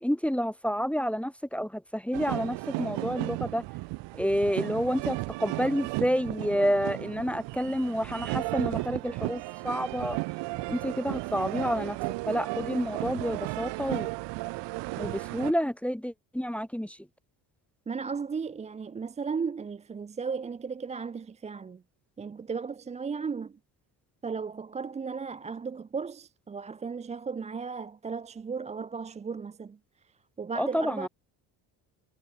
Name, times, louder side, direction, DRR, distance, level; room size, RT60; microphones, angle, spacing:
voice 1, 0.0-3.6 4.1-10.2 10.7-12.0 12.3-14.1 15.0-17.0 30.5-31.1, equal, 5° left, 1.4 m, -29 dB
sound 1, 2.1-15.5, right 22 dB, 70° right, 0.6 m, -34 dB
voice 2, 17.9-21.8 22.2-23.6 24.2-29.8 30.4-31.1, right 5 dB, 15° right, 0.4 m, -35 dB
cardioid pair, 95°, 44 cm